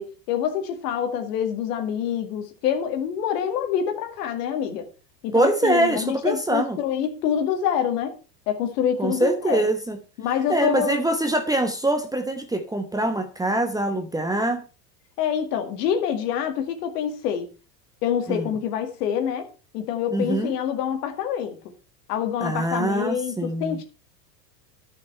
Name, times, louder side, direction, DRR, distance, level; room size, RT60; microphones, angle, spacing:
voice 1, 0.0-4.9 5.2-8.1 8.5-9.6 10.2-11.0 15.2-17.5 18.0-19.5 19.7-21.6 22.1-23.8, left 8 dB, 70° left, 2.1 m, -26 dB
voice 2, 5.3-6.8 9.0-10.0 10.5-14.6 18.3-18.5 20.1-20.5 22.4-23.8, right 1 dB, 5° right, 1.0 m, -24 dB
10.5 x 5.9 x 5.5 m
hypercardioid pair, 105°, 49 cm